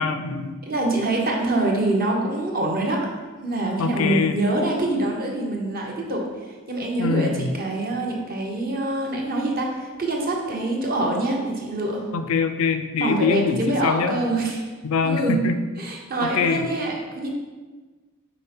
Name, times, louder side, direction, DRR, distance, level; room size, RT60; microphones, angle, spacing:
voice 1, 0.0-0.6 3.8-4.3 7.0-7.5 12.1-14.2 14.8-15.5 16.2-16.6, left 5 dB, 75° left, 9 dB, 0.4 m, -23 dB
voice 2, 0.7-6.3 6.7-12.1 13.0-14.6 15.0-15.4 15.8-17.3, right 2 dB, 40° right, 0 dB, 0.9 m, -25 dB
5.4 x 4.2 x 4.3 m, 1.4 s
head